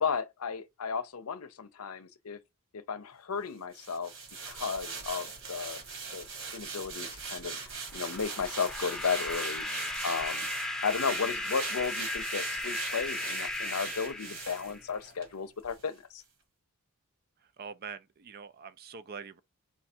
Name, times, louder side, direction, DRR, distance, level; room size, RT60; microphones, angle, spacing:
voice 1, 0.0-2.4 2.7-4.1 4.5-5.8 6.1-6.3 6.5-7.6 7.9-9.7 10.0-10.5 10.8-16.2, left 5 dB, 70° left, 0.6 m, -34 dB
sound 1, 3.7-15.3 15.6-15.8, right 5 dB, 60° right, 1.6 m, -41 dB
sound 2, 7.9-14.9, left 1 dB, 5° left, 0.7 m, -36 dB
voice 2, 17.4-19.4, right 6 dB, 45° right, 0.4 m, -45 dB
4.7 x 2.4 x 4.3 m
head